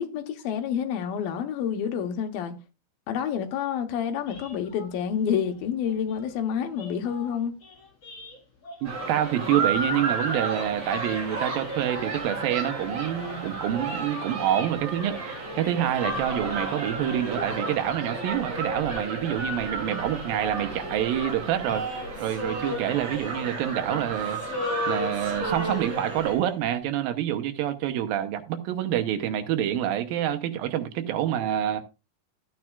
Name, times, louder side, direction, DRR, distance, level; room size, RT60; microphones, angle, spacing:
voice 1, 0.0-2.5 3.1-7.5, left 8 dB, 80° left, 2.9 m, -28 dB
sound 1, 4.2-9.3 9.6-14.1 14.4-18.3, left 1 dB, 40° left, 5.0 m, -45 dB
sound 2, 8.8-26.3, right 3 dB, 45° right, 5.0 m, -33 dB
voice 2, 8.8-21.8 22.2-24.4 24.9-31.8, right 11 dB, 85° right, 2.6 m, -27 dB
Male singing, 21.6-24.1 24.4-26.5, equal, 5° left, 3.6 m, -34 dB
14.0 x 9.0 x 2.4 m
omnidirectional pair, 4.2 m